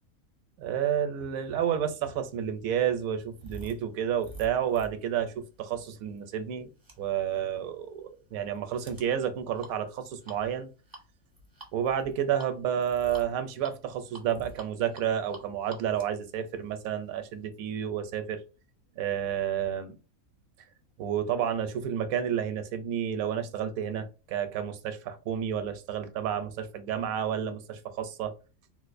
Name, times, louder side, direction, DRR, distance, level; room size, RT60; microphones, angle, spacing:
voice 1, 0.6-6.7 7.0-10.7 11.7-18.4 19.0-19.9 21.0-28.3, right 9 dB, 80° right, 1.0 m, -30 dB
sound 1, 1.7-17.4, right 2 dB, 25° right, 0.5 m, -51 dB
3.9 x 2.4 x 2.5 m
omnidirectional pair, 1.5 m